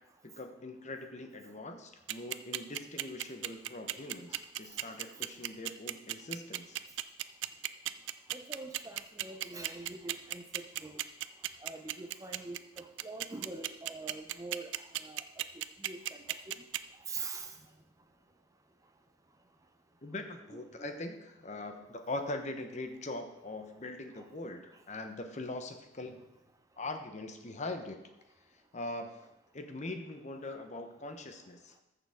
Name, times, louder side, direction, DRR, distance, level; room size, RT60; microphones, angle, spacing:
voice 1, 0.2-6.8 20.0-26.3 26.8-28.0 28.7-29.1 29.5-31.7, left 2 dB, 35° left, 6 dB, 0.9 m, -42 dB
sound 1, 2.1-16.8, right 14 dB, 70° right, 0.4 m, -35 dB
voice 2, 8.3-11.0 11.6-14.7 15.0-15.2 15.8-16.0 17.1-17.5 20.5-21.0, right 3 dB, 15° right, 7 dB, 0.6 m, -44 dB
13.5 x 6.8 x 3.6 m, 0.88 s
head